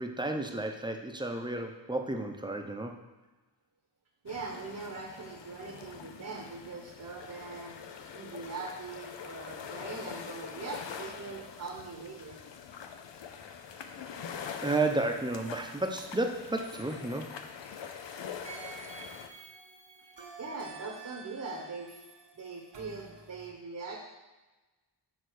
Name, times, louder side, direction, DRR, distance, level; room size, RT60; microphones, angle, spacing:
voice 1, 0.0-3.0 14.6-17.4, right 2 dB, 10° right, 3 dB, 0.7 m, -32 dB
voice 2, 4.2-7.8 8.1-12.4 20.4-22.0 22.4-24.0, right 4 dB, 45° right, 0 dB, 1.0 m, -41 dB
sound 1, 4.3-19.3, left 7 dB, 80° left, 0.7 m, -44 dB
sound 2, 16.6-18.0 18.4-23.5, right 5 dB, 90° right, 1.5 m, -50 dB
6.8 x 3.6 x 6.3 m, 1.2 s
wide cardioid pair, 120°, 43 cm